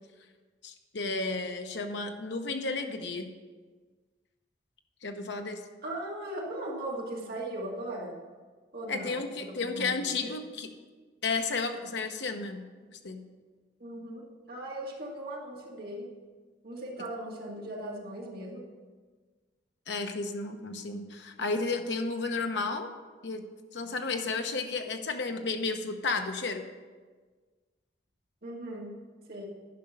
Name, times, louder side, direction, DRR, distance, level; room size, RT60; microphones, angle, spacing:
voice 1, 0.6-3.3 5.0-5.6 8.9-10.7 11.2-13.3 19.9-22.9 23.2-23.4 23.7-26.6, left 3 dB, 70° left, 5 dB, 0.9 m, -33 dB
voice 2, 5.8-8.2 8.7-10.3 13.8-16.1 16.6-18.7 28.4-28.9 29.3-29.5, right 1 dB, 55° right, -3 dB, 2.2 m, -38 dB
11.0 x 5.2 x 6.7 m, 1.4 s
head